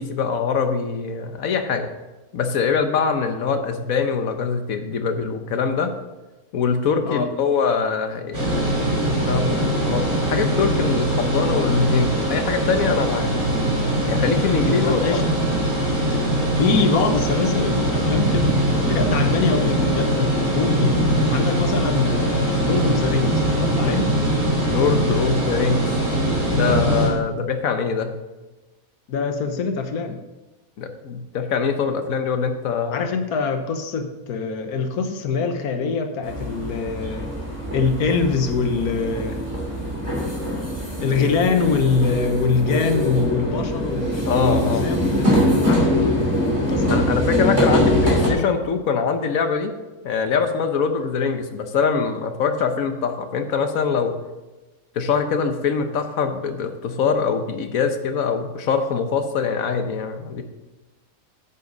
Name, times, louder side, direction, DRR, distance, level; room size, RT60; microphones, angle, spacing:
voice 1, 0.0-1.9 2.3-5.9 6.5-8.8 9.1-13.3 14.1-15.2 24.6-26.0 26.5-28.2 30.8-33.1 44.3-44.8 46.9-49.7 50.0-54.1 54.9-60.4, left 5 dB, 70° left, 7 dB, 1.3 m, -23 dB
sound 1, 8.3-27.1, right 1 dB, 45° right, 3.2 m, -21 dB
voice 2, 14.8-15.2 16.1-16.3 16.5-21.0 21.3-24.1 29.1-30.2 32.9-37.3 37.7-39.4 41.0-47.2, left 4 dB, 90° left, 7 dB, 1.5 m, -24 dB
sound 2, 36.2-48.3, equal, 20° right, 3.0 m, -23 dB
10.5 x 8.3 x 4.0 m, 1.1 s
omnidirectional pair, 1.5 m